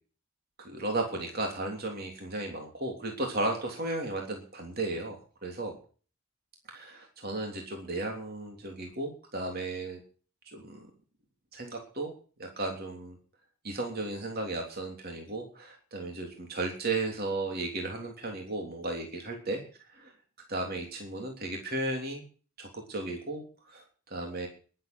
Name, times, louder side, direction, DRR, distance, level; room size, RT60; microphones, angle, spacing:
voice 1, 0.6-5.8 6.7-10.0 10.4-10.9 11.5-12.1 12.4-13.2 13.6-20.1 20.5-22.2 22.6-24.5, right 2 dB, 45° right, 2 dB, 3.3 m, -35 dB
21.0 x 8.1 x 6.2 m, 0.41 s
head